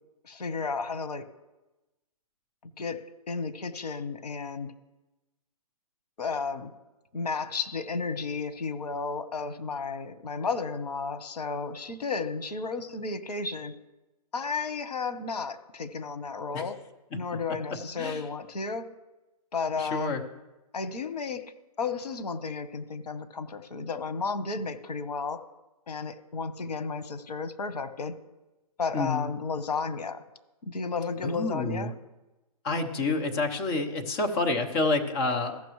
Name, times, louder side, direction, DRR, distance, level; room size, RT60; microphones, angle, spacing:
voice 1, 0.2-1.3 2.8-4.7 6.2-6.7 7.1-13.7 14.3-16.8 17.1-18.9 19.5-20.2 20.7-21.5 21.8-25.4 25.9-28.1 28.8-30.2 30.7-31.9, left 4 dB, 90° left, 11 dB, 1.1 m, -33 dB
voice 2, 19.8-20.2 28.9-29.3 31.2-31.9 32.6-35.6, left 3 dB, 20° left, 3 dB, 0.9 m, -28 dB
15.5 x 6.0 x 3.1 m, 1.0 s
hypercardioid pair, 160°, 20 cm